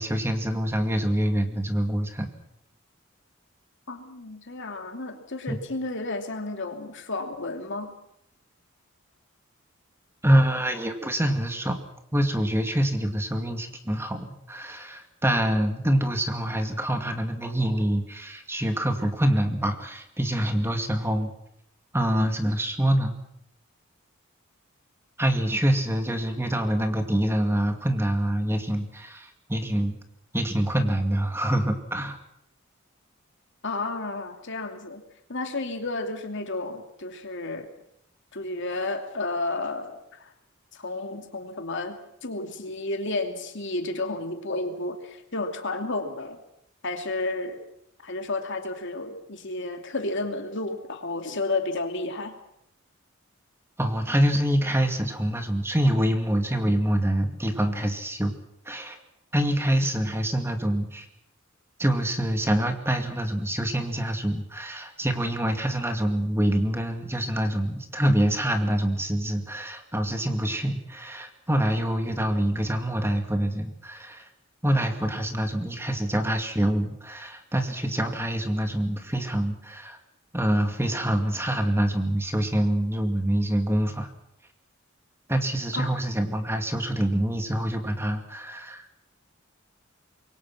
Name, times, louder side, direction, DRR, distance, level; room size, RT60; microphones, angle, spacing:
voice 1, 0.0-2.3 5.5-5.6 10.2-21.3 21.9-23.1 25.2-30.0 30.3-32.2 53.8-58.3 58.7-59.0 59.3-61.1 61.8-74.3 74.6-80.0 80.3-84.1 85.3-88.8, right 1 dB, 10° right, 5 dB, 2.3 m, -25 dB
voice 2, 3.9-7.9 33.6-35.0 35.3-37.7 38.3-40.3 40.7-46.4 46.8-47.6 48.0-52.3 85.7-85.9, left 2 dB, 60° left, 5 dB, 2.8 m, -32 dB
26.0 x 23.0 x 6.0 m, 0.78 s
head